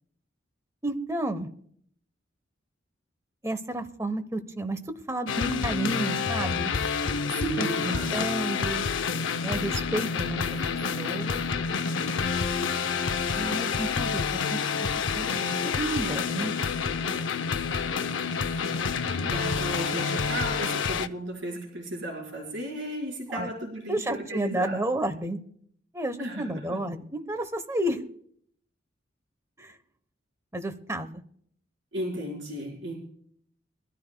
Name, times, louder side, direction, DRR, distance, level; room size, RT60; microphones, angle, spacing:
voice 1, 0.8-1.5 3.4-4.8 5.1-6.7 7.6-8.8 9.4-10.4 11.0-11.4 13.3-14.9 15.1-16.5 23.3-23.5 23.9-25.4 25.9-28.0 29.6-29.7 30.5-31.2, right 1 dB, 15° right, 9 dB, 0.9 m, -31 dB
sound 1, 5.3-21.1, left 5 dB, 80° left, 0.6 m, -28 dB
voice 2, 7.4-8.2 19.2-24.8 26.2-26.8 31.9-33.0, right 1 dB, 70° right, -1 dB, 4.6 m, -34 dB
23.0 x 13.0 x 2.2 m, 0.63 s
head